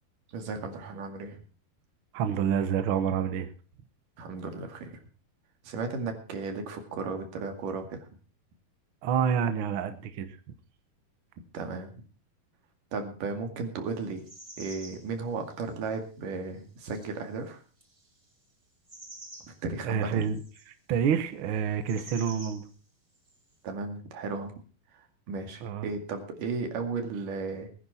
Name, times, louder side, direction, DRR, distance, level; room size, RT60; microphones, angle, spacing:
voice 1, 0.3-1.4 4.2-5.0 5.6-8.0 11.5-12.0 12.9-14.2 14.6-17.6 19.5-20.3 23.6-24.5 25.3-27.7, right 4 dB, 65° right, 5 dB, 3.7 m, -35 dB
voice 2, 2.1-3.5 9.0-10.3 19.8-20.4 20.9-22.6 25.6-25.9, right 7 dB, 85° right, 10 dB, 1.1 m, -28 dB
sound 1, 14.0-15.1 15.5-15.9 16.8-17.2 17.8-18.2 18.9-19.6 20.0-20.7 21.9-22.7 23.1-23.4, right 2 dB, 20° right, 0.8 m, -48 dB
20.5 x 10.0 x 4.3 m, 0.38 s
omnidirectional pair, 4.2 m